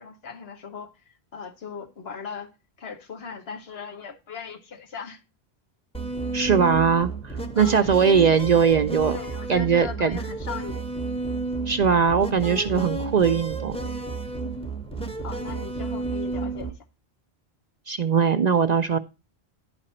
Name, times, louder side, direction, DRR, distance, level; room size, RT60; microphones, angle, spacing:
voice 1, 0.0-2.5 2.8-5.2 7.5-7.9 9.1-10.9 15.2-16.8, left 6 dB, 70° left, 1.4 m, -38 dB
sound 1, 5.9-16.7, right 3 dB, 5° left, 0.8 m, -31 dB
voice 2, 6.3-9.2 9.5-10.2 11.7-13.8 17.9-19.0, right 6 dB, 55° right, 0.5 m, -20 dB
10.5 x 5.0 x 4.2 m
omnidirectional pair, 1.1 m